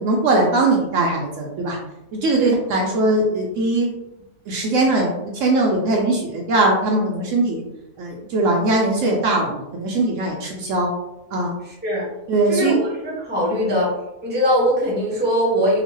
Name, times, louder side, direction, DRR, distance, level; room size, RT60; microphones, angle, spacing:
voice 1, 0.0-1.8 2.1-3.9 4.5-7.6 8.0-10.9 11.3-11.5 12.3-12.8 13.6-13.8, right 2 dB, 70° right, -1 dB, 0.9 m, -20 dB
voice 2, 12.5-13.9 14.2-15.8, equal, 10° right, -5 dB, 0.8 m, -21 dB
2.9 x 2.1 x 3.0 m, 0.90 s
omnidirectional pair, 1.5 m